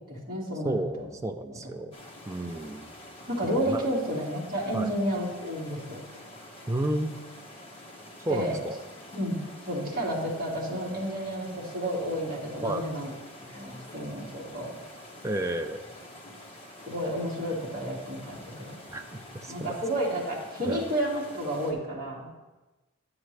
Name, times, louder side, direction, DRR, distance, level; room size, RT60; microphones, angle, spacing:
voice 1, 0.1-1.1 3.3-6.1 8.3-8.6 9.1-13.1 13.5-14.7 16.9-18.8 19.5-22.3, equal, 40° right, -5 dB, 2.1 m, -31 dB
voice 2, 0.6-2.0 2.3-2.9 3.4-3.8 4.7-4.9 6.7-7.1 8.2-8.8 12.6-12.8 15.2-15.8 18.9-19.7 20.6-20.8, right 1 dB, 15° right, 6 dB, 0.4 m, -31 dB
sound 1, 1.9-21.7, left 1 dB, 25° left, 0.9 m, -47 dB
10.5 x 7.1 x 3.3 m, 1.2 s
head